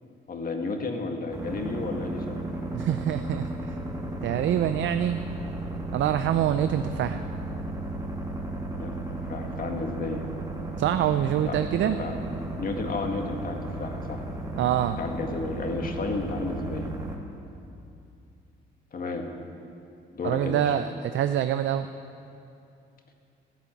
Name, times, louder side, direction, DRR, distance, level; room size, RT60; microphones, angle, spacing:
voice 1, 0.3-2.4 8.8-10.2 11.4-11.5 11.8-12.2 12.6-14.2 15.0-16.9 18.9-19.3 20.1-20.7, left 3 dB, 45° left, 3 dB, 1.9 m, -32 dB
sound 1, 1.3-17.2, right 2 dB, 20° right, 2.3 m, -34 dB
voice 2, 2.7-3.7 4.2-5.2 5.9-7.2 10.8-12.0 14.5-15.0 20.2-21.9, right 10 dB, 70° right, 10 dB, 0.5 m, -25 dB
13.5 x 11.0 x 8.5 m, 2.6 s
cardioid pair, 90°, 20 cm